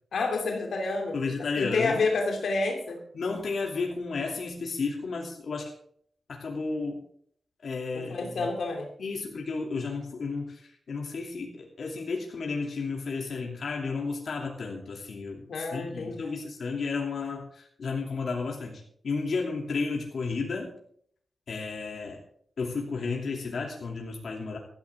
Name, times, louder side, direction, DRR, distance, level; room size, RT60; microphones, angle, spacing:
voice 1, 0.1-3.0 7.9-8.9 15.5-16.3, left 3 dB, 85° left, 2 dB, 2.8 m, -29 dB
voice 2, 1.1-2.0 3.1-5.7 6.3-7.0 7.6-8.5 9.0-10.6 10.9-20.7 21.5-22.2 22.6-24.6, left 4 dB, 65° left, 0 dB, 2.8 m, -32 dB
15.5 x 13.0 x 3.7 m, 0.63 s
wide cardioid pair, 135°, 0 cm